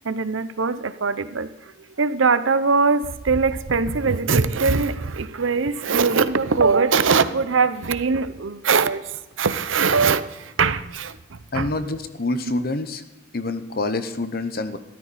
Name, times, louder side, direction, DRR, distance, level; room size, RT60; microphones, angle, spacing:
voice 1, 0.0-11.7, right 4 dB, 85° right, 13 dB, 0.8 m, -21 dB
voice 2, 11.5-13.0 13.3-14.8, left 2 dB, 50° left, 10 dB, 0.9 m, -26 dB
13.5 x 13.0 x 4.2 m, 1.1 s
head